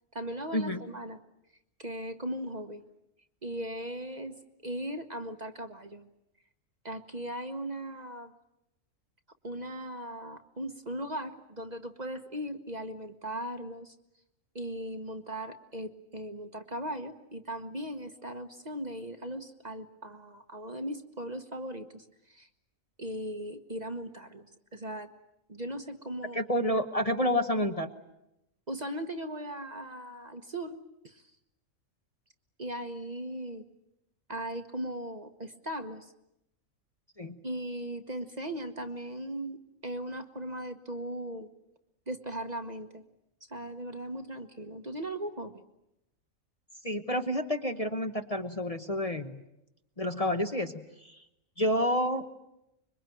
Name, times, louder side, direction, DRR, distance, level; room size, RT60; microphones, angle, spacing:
voice 1, 0.1-1.2 1.8-2.8 3.4-4.4 4.6-6.1 6.8-8.3 9.4-13.9 14.5-22.5 23.0-24.5 24.7-25.1 25.5-26.4 28.7-30.8 31.0-31.2 32.6-33.7 34.3-36.1 37.4-41.5 42.1-43.0 43.5-45.6, right 1 dB, 35° right, 7 dB, 1.2 m, -38 dB
voice 2, 26.3-27.9 37.2-37.4 46.8-49.4 50.0-50.7 51.0-51.2 51.6-52.3, left 1 dB, 30° left, 5 dB, 1.1 m, -29 dB
26.0 x 23.0 x 9.2 m, 0.87 s
omnidirectional pair, 1.4 m